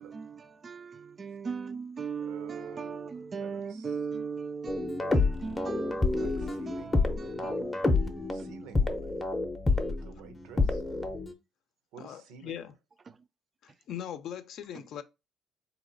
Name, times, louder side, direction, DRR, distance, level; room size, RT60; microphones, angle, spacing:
voice 1, 0.0-8.4, right 5 dB, 25° right, 0.3 m, -39 dB
voice 2, 2.2-4.0 6.1-7.7 8.3-9.2 9.9-10.8 11.9-12.6, right 7 dB, 85° right, 0.8 m, -51 dB
sound 1, 4.7-11.3, left 3 dB, 15° left, 0.6 m, -28 dB
voice 3, 12.0-12.7 13.6-15.0, left 10 dB, 60° left, 0.5 m, -40 dB
4.0 x 2.9 x 4.0 m
cardioid pair, 145°, 0 cm